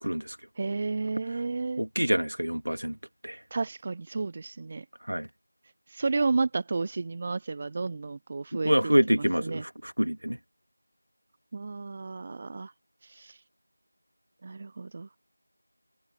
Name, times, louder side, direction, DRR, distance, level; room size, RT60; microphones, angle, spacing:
voice 1, 0.0-0.4 1.8-3.0 3.2-3.4 5.1-5.3 8.6-10.4, equal, 85° right, 2.5 m, -26 dB
voice 2, 0.6-1.8 3.5-4.9 5.9-9.6 11.5-12.7 13.0-13.4 14.4-15.1, right 3 dB, 20° right, 0.7 m, -32 dB
figure-of-eight pair, 175°, 0 cm